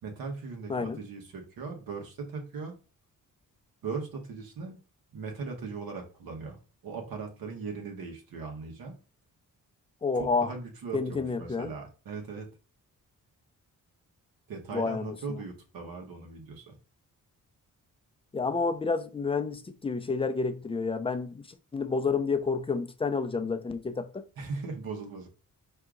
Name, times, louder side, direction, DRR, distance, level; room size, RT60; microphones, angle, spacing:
voice 1, 0.0-2.7 3.8-4.8 5.1-9.0 10.2-12.5 14.5-16.8 24.4-25.3, right 4 dB, 90° right, 1.1 m, -39 dB
voice 2, 10.0-10.5 10.9-11.7 14.7-15.4 18.3-21.4 21.7-24.2, left 4 dB, 15° left, 0.4 m, -29 dB
4.7 x 2.8 x 3.7 m
wide cardioid pair, 150°, 34 cm